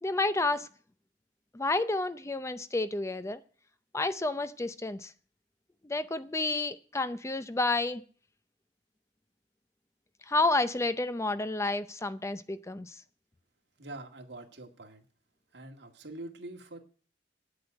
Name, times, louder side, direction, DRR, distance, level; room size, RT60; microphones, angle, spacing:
voice 1, 0.0-0.7 1.5-3.4 3.9-5.1 5.8-8.0 10.3-12.9, left 2 dB, 15° left, 13 dB, 0.5 m, -30 dB
voice 2, 13.8-15.0 15.5-16.8, right 2 dB, 70° right, 3 dB, 2.0 m, -44 dB
9.3 x 7.9 x 8.8 m, 0.42 s
head